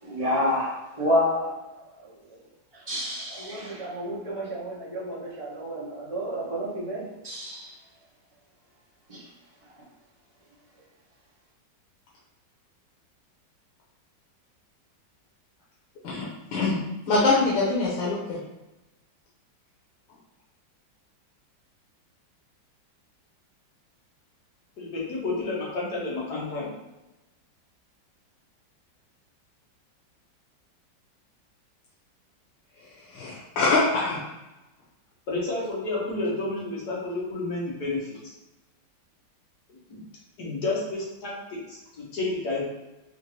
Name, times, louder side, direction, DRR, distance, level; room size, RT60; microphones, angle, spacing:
voice 1, 0.0-2.1 2.7-7.7 9.1-9.3, left 1 dB, 25° right, -6 dB, 0.9 m, -29 dB
voice 2, 17.1-18.4 33.1-34.2, left 3 dB, 90° left, -6 dB, 1.6 m, -23 dB
voice 3, 24.8-26.7 35.3-38.3 39.7-40.0 40.4-42.6, left 2 dB, 60° left, -5 dB, 1.7 m, -31 dB
4.4 x 2.8 x 3.1 m, 1.0 s
omnidirectional pair, 2.0 m